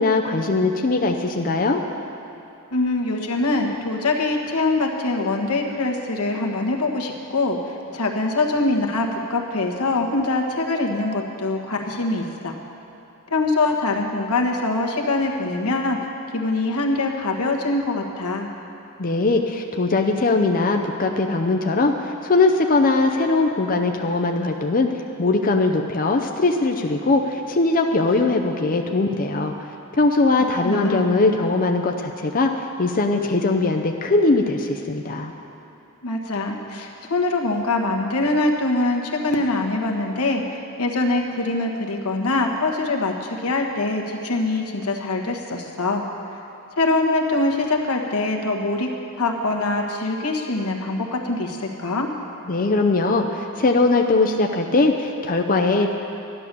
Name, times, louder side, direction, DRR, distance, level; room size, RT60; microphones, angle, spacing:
voice 1, 0.0-1.8 19.0-24.9 25.2-29.5 30.0-32.5 32.8-35.3 52.5-55.9, left 3 dB, 40° left, 3 dB, 0.6 m, -20 dB
voice 2, 2.7-12.6 13.3-16.0 16.3-18.5 30.4-31.1 36.0-46.0 46.8-48.9 49.2-52.1, left 2 dB, 90° left, 1 dB, 1.5 m, -23 dB
13.0 x 11.0 x 6.8 m, 2.8 s
head